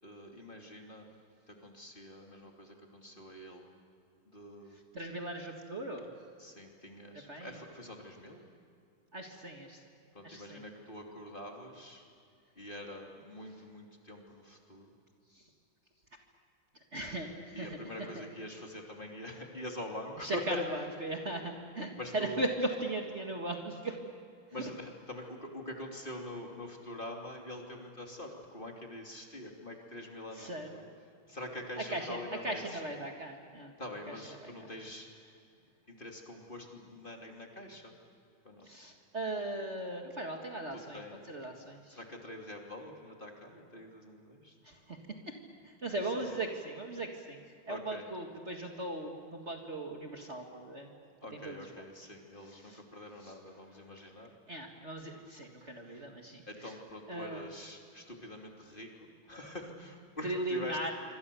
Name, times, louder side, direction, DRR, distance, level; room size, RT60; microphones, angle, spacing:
voice 1, 0.0-1.1 1.5-3.6 4.3-4.8 6.4-8.4 10.1-12.0 12.6-14.9 17.5-20.6 22.0-22.4 24.5-30.9 31.3-32.8 33.8-35.1 35.9-37.9 38.4-38.7 40.9-41.3 41.9-44.5 45.9-46.3 47.7-48.0 51.2-54.3 56.5-60.9, left 1 dB, 25° left, 1 dB, 3.0 m, -45 dB
voice 2, 4.7-6.1 7.1-7.6 9.1-9.8 10.2-10.6 15.3-15.5 16.9-18.2 20.2-24.0 30.3-30.7 31.8-33.7 34.1-34.7 38.6-41.0 41.3-42.0 44.6-45.4 45.6-47.4 47.7-50.9 51.3-51.8 52.4-52.8 53.2-53.4 53.7-54.1 54.5-56.8 57.1-57.5 60.2-60.9, right 1 dB, 35° right, 2 dB, 2.0 m, -38 dB
27.0 x 25.5 x 7.0 m, 2.4 s
omnidirectional pair, 2.2 m